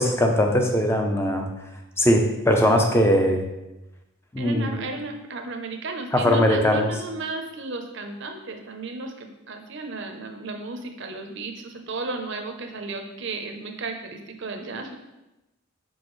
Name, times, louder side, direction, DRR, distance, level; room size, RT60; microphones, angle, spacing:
voice 1, 0.0-1.5 2.0-3.4 4.3-4.9 6.1-6.9, equal, 10° left, 2 dB, 0.6 m, -20 dB
voice 2, 4.4-14.9, right 3 dB, 55° right, 5 dB, 0.7 m, -34 dB
6.3 x 5.4 x 3.2 m, 0.97 s
head